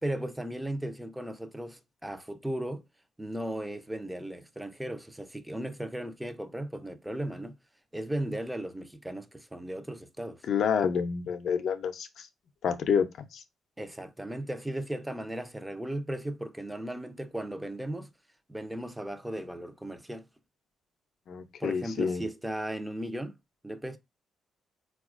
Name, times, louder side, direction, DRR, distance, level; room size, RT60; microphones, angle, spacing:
voice 1, 0.0-2.8 3.2-7.6 7.9-10.4 13.8-18.1 18.5-20.3 21.6-23.3 23.6-24.0, right 1 dB, 5° right, 0.5 m, -36 dB
voice 2, 10.5-12.3 12.6-13.4 21.3-22.2, left 7 dB, 65° left, 0.5 m, -28 dB
4.1 x 2.3 x 2.4 m
cardioid pair, 90°, 0 cm